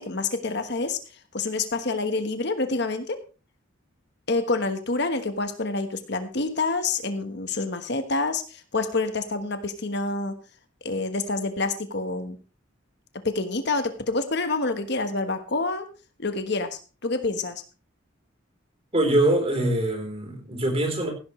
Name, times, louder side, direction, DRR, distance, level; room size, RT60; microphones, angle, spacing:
voice 1, 0.0-3.2 4.3-10.4 10.8-12.4 13.2-15.9 16.2-17.6, left 3 dB, 55° left, 8 dB, 1.3 m, -27 dB
voice 2, 18.9-21.1, right 1 dB, 30° right, 3 dB, 3.8 m, -23 dB
15.5 x 11.5 x 3.2 m, 0.33 s
head